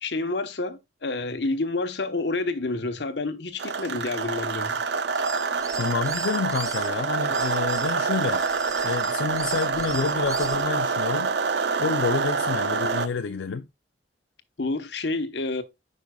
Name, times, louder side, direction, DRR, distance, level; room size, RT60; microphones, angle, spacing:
voice 1, 0.0-4.8 14.6-15.6, left 3 dB, 70° left, 0.9 m, -29 dB
sound 1, 3.6-13.1, right 5 dB, 65° right, 0.5 m, -26 dB
sound 2, 5.1-6.9 7.3-10.6, right 4 dB, 20° right, 0.6 m, -39 dB
voice 2, 5.8-8.4 8.8-11.3 11.8-13.7, left 5 dB, 85° left, 0.4 m, -28 dB
9.2 x 5.4 x 2.3 m
head